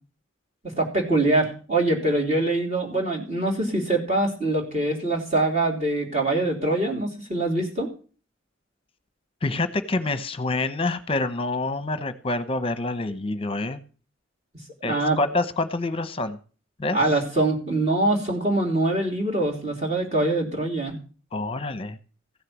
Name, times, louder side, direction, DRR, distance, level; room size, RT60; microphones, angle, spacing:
voice 1, 0.8-7.9 14.8-15.2 16.9-21.0, right 2 dB, 35° right, -1 dB, 2.9 m, -24 dB
voice 2, 9.4-13.8 14.8-16.4 16.8-17.0 21.3-22.0, left 2 dB, 25° left, 11 dB, 0.9 m, -27 dB
15.5 x 6.6 x 7.2 m, 0.38 s
head